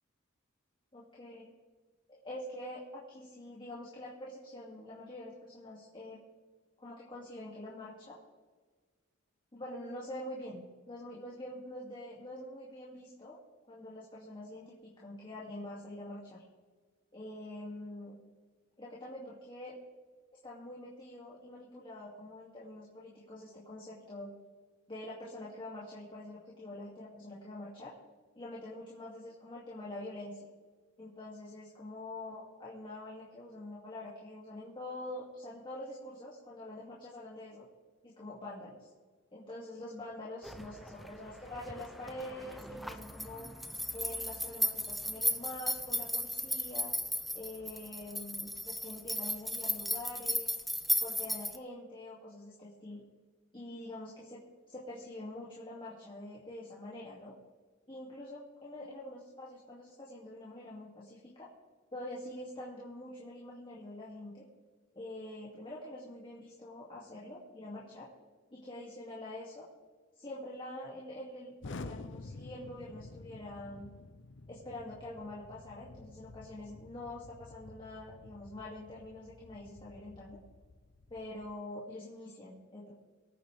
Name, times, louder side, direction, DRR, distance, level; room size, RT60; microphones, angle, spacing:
voice 1, 0.9-1.5 2.1-6.2 6.8-8.2 9.5-13.4 13.7-16.4 17.1-18.1 18.8-19.8 20.4-24.3 24.9-27.9 28.3-30.4 31.0-37.7 38.0-38.9 39.3-43.5 43.9-46.9 47.3-50.5 51.0-53.0 53.5-57.3 57.9-61.5 61.9-64.4 64.9-68.1 68.5-69.7 70.2-73.9 74.5-80.4 81.1-82.9, left 1 dB, 25° left, -5 dB, 2.5 m, -45 dB
sound 1, 40.4-51.6, equal, ahead, 0.6 m, -36 dB
Explosion, 71.6-81.5, left 3 dB, 60° left, 0.7 m, -50 dB
24.5 x 9.2 x 3.5 m, 1.5 s
head